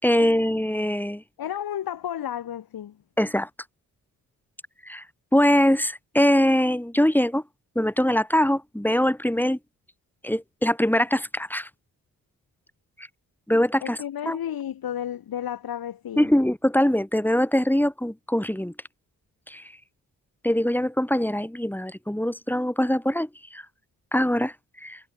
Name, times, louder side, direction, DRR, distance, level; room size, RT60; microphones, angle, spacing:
voice 1, 0.0-1.2 3.2-3.5 4.9-5.0 5.3-7.4 7.8-9.6 10.2-11.7 13.5-14.0 14.3-14.4 16.2-18.7 19.5-19.6 20.4-23.6 24.1-24.5 24.8-25.0, left 1 dB, 5° left, 4.1 m, -22 dB
voice 2, 1.4-3.0 13.8-16.3, left 10 dB, 80° left, 2.9 m, -32 dB
supercardioid pair, 55°, 36 cm